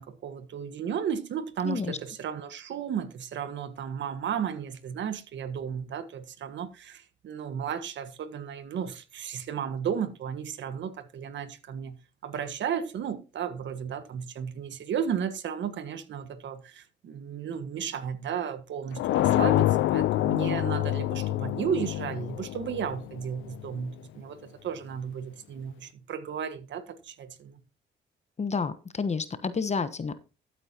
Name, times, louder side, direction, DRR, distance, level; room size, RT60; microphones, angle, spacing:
voice 1, 0.0-12.0 12.2-27.6, right 7 dB, 65° right, 1.5 m, -34 dB
voice 2, 1.6-2.0 28.4-30.1, left 5 dB, 35° left, 1.1 m, -30 dB
sound 1, 19.0-23.7, left 14 dB, 75° left, 0.5 m, -26 dB
13.5 x 8.6 x 2.9 m
cardioid pair, 90°, 20 cm